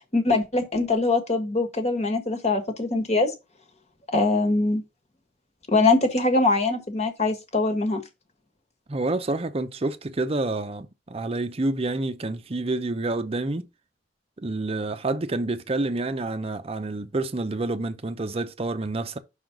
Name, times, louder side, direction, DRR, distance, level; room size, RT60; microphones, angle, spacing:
voice 1, 0.1-3.3 4.1-4.8 5.7-8.0, left 3 dB, 35° left, 1.4 m, -22 dB
voice 2, 8.9-13.7 14.4-19.2, right 2 dB, 35° right, 0.6 m, -28 dB
5.7 x 3.9 x 5.9 m
head